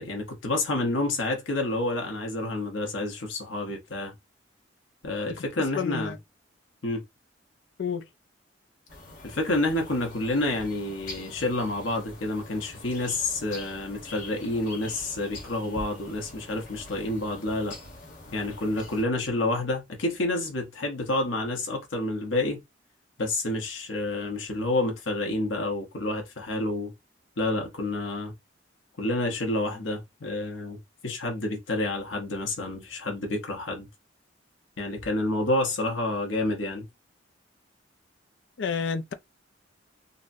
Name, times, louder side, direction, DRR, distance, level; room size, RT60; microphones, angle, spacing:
voice 1, 0.0-4.1 5.0-6.1 6.8-7.0 9.2-17.8 18.3-22.6 23.2-26.9 27.4-28.3 29.0-30.8 31.0-33.9 34.8-36.8, left 2 dB, 85° left, 0.9 m, -29 dB
voice 2, 5.7-6.2 7.8-8.0 38.6-39.1, left 6 dB, 70° left, 0.4 m, -29 dB
sound 1, 8.9-19.0, left 2 dB, 45° left, 0.9 m, -44 dB
3.9 x 2.1 x 2.5 m
head